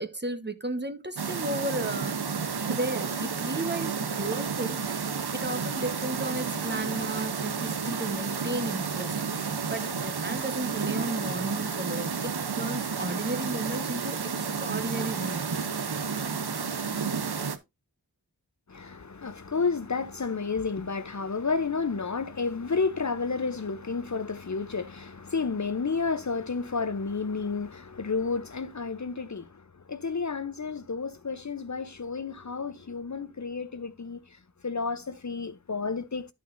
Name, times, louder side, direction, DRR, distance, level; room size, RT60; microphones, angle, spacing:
voice 1, 0.0-2.4 2.7-4.8 5.3-9.2 9.7-15.6, right 2 dB, 25° right, 1.0 m, -34 dB
sound 1, 1.1-17.6, right 6 dB, 80° right, 0.9 m, -31 dB
voice 2, 18.7-34.2 34.6-36.3, left 4 dB, 45° left, 0.7 m, -31 dB
11.5 x 6.3 x 2.6 m
wide cardioid pair, 45°, 38 cm